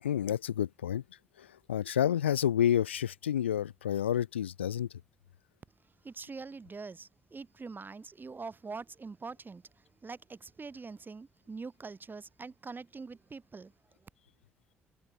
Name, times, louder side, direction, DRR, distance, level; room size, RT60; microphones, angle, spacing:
voice 1, 0.0-1.0 1.7-4.9, left 10 dB, 90° left, 0.4 m, -29 dB
voice 2, 5.8-14.1, right 4 dB, 35° right, 3.4 m, -44 dB
hypercardioid pair, 45°, 6 cm